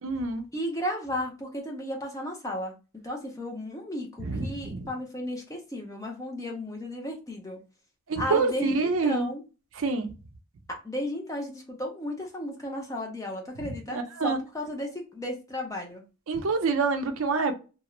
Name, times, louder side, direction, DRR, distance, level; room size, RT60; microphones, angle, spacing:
voice 1, 0.0-0.4 4.2-4.9 8.1-9.3 9.7-10.1 13.6-14.4 16.3-17.5, right 4 dB, 65° right, 7 dB, 0.5 m, -27 dB
voice 2, 0.5-2.7 3.0-7.6 8.2-9.4 10.8-16.0, left 1 dB, 15° left, 2 dB, 0.5 m, -34 dB
2.4 x 2.0 x 2.9 m, 0.31 s
head